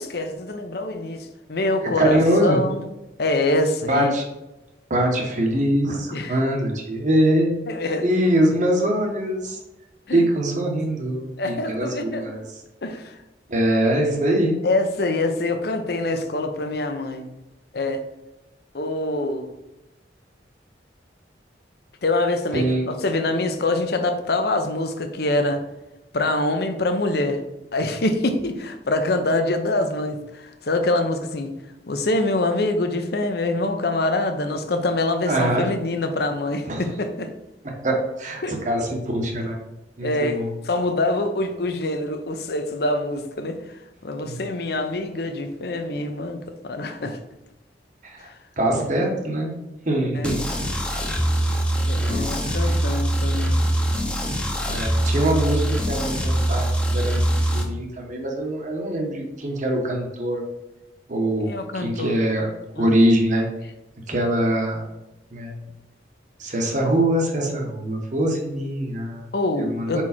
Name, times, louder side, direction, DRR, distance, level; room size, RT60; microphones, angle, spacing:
voice 1, 0.0-2.9 3.2-4.1 6.1-6.4 7.7-8.1 10.1-10.2 11.4-12.2 12.8-13.2 14.6-17.3 17.7-18.0 18.7-19.5 22.0-25.6 26.1-27.4 27.7-31.5 31.9-37.3 38.4-38.6 40.0-43.6 44.0-47.2 48.2-48.3 50.1-50.3 51.8-53.6 61.4-62.2 62.8-62.9 69.3-70.0, left 2 dB, 60° left, 7 dB, 0.7 m, -25 dB
voice 2, 2.0-2.6 3.9-4.2 4.9-7.7 8.0-9.6 10.1-12.4 13.5-14.6 22.5-22.8 35.2-35.7 36.7-36.8 37.6-39.6 40.0-40.5 44.2-44.4 48.0-48.2 48.6-50.4 52.0-52.3 52.6-52.8 54.6-60.4 61.1-62.5 62.8-63.5 64.1-64.9 65.3-65.5 66.4-69.2 69.6-70.0, right 1 dB, 45° right, 1 dB, 1.2 m, -23 dB
sound 1, 50.2-57.6, right 1 dB, 5° left, 0.8 m, -23 dB
4.8 x 4.5 x 4.3 m, 0.97 s
head